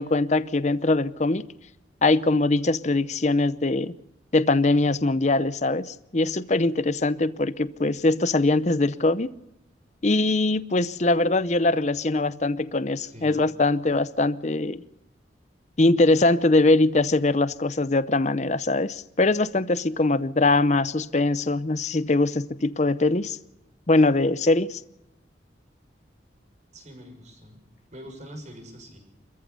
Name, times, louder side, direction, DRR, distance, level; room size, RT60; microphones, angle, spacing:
voice 1, 0.0-1.4 2.0-3.9 4.3-9.3 10.0-14.8 15.8-23.4 23.9-24.8, left 2 dB, 40° left, 0.7 m, -22 dB
voice 2, 13.0-13.4 26.7-27.6 27.9-29.0, equal, 40° right, 6.0 m, -44 dB
26.0 x 14.5 x 6.9 m
head